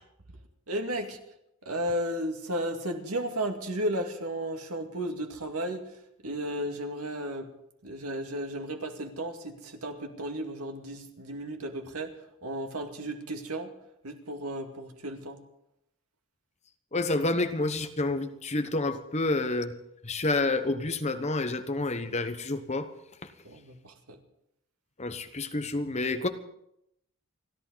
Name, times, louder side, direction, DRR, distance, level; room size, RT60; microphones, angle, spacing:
voice 1, 0.7-1.2 1.7-6.0 6.2-7.5 7.8-12.1 12.4-13.7 14.0-15.4 23.4-24.2, right 1 dB, 85° right, 4 dB, 2.2 m, -34 dB
voice 2, 16.9-19.7 20.0-22.9 25.0-26.3, left 2 dB, 30° left, 8 dB, 1.1 m, -29 dB
30.0 x 11.5 x 4.0 m, 0.78 s
head